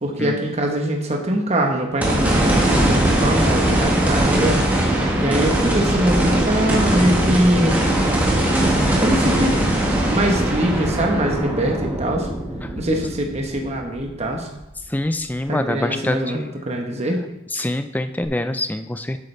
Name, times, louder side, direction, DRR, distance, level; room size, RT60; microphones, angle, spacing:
voice 1, 0.0-7.8 9.0-9.5 10.0-12.3 12.7-14.5 15.5-16.4 16.7-17.2, right 1 dB, 30° right, 2 dB, 1.1 m, -22 dB
sound 1, 2.0-14.3 14.8-14.9 18.2-18.3, right 1 dB, 10° right, 1.6 m, -20 dB
voice 2, 14.9-16.5 17.5-19.2, left 1 dB, 10° left, 9 dB, 0.4 m, -25 dB
11.5 x 8.4 x 3.3 m, 0.93 s
head